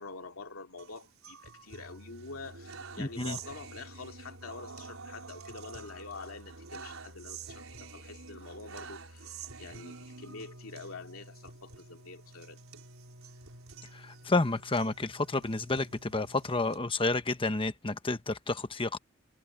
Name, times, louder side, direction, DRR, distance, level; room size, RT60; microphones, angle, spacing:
voice 1, 0.0-12.6, left 3 dB, 90° left, 2.5 m, -46 dB
sound 1, 0.8-16.8, right 4 dB, 90° right, 4.1 m, -48 dB
voice 2, 3.0-3.4 13.9-19.0, left 3 dB, 25° left, 1.1 m, -30 dB
head